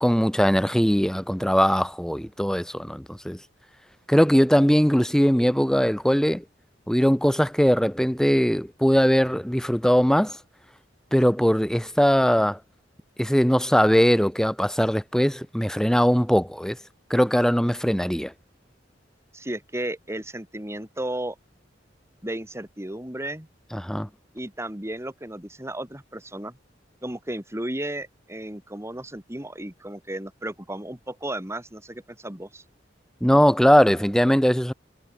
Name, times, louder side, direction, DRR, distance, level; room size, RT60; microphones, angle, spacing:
voice 1, 0.0-3.4 4.1-6.4 6.9-10.4 11.1-12.6 13.2-16.8 17.1-18.3 23.7-24.1 33.2-34.7, equal, 5° left, 1.4 m, -20 dB
voice 2, 19.3-21.4 22.2-23.5 24.3-26.6 27.0-32.6, right 1 dB, 15° right, 2.9 m, -34 dB
head